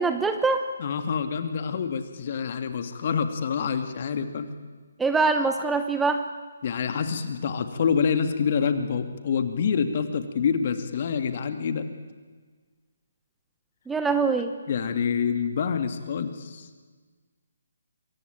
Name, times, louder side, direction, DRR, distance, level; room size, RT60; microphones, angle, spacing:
voice 1, 0.0-0.6 5.0-6.3 13.9-14.5, right 4 dB, 5° right, 8 dB, 1.0 m, -23 dB
voice 2, 0.8-4.5 6.6-11.9 14.7-16.7, left 6 dB, 45° left, 8 dB, 2.5 m, -27 dB
26.5 x 23.5 x 9.0 m, 1.5 s
figure-of-eight pair, 145°, 0 cm